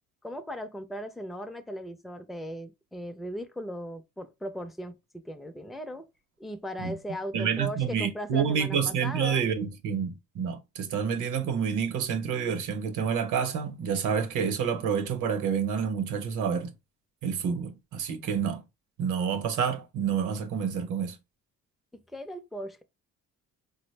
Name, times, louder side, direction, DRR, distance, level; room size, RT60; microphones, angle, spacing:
voice 1, 0.2-6.1 6.4-9.5 22.1-22.8, equal, ahead, 0.4 m, -38 dB
voice 2, 7.3-16.7 17.2-18.6 19.0-21.2, right 7 dB, 80° right, 0.8 m, -28 dB
3.9 x 2.0 x 3.1 m
cardioid pair, 90°, 30 cm